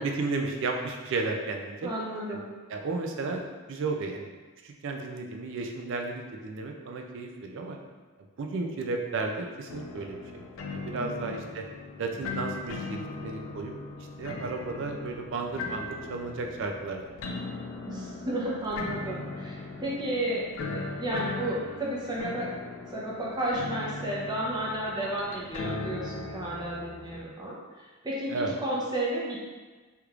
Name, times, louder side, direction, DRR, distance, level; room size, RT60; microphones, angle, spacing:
voice 1, 0.0-1.9 2.3-2.4 2.7-4.3 4.6-7.8 8.4-11.6 12.0-13.7 14.0-17.0 28.3-28.5, right 3 dB, 60° right, 2 dB, 0.4 m, -33 dB
voice 2, 1.8-2.5 10.9-11.4 17.9-22.5 22.8-29.5, right 1 dB, 20° right, -6 dB, 0.7 m, -33 dB
sound 1, 9.7-27.2, left 3 dB, 75° left, 0.4 m, -39 dB
3.4 x 3.0 x 2.4 m, 1.3 s
head